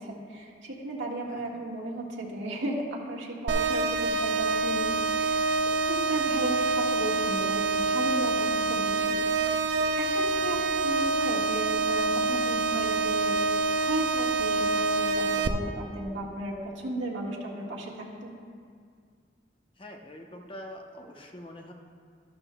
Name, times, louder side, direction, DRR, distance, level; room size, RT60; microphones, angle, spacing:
voice 1, 0.0-9.6 10.0-16.6 16.8-18.3, right 1 dB, 90° right, -3 dB, 1.7 m, -35 dB
voice 2, 1.3-1.6 6.1-6.7 10.3-10.6 19.8-21.7, left 1 dB, 30° left, 2 dB, 0.8 m, -45 dB
sound 1, 3.5-15.5, right 3 dB, 65° right, 0.5 m, -26 dB
12.5 x 12.0 x 2.3 m, 2.1 s
head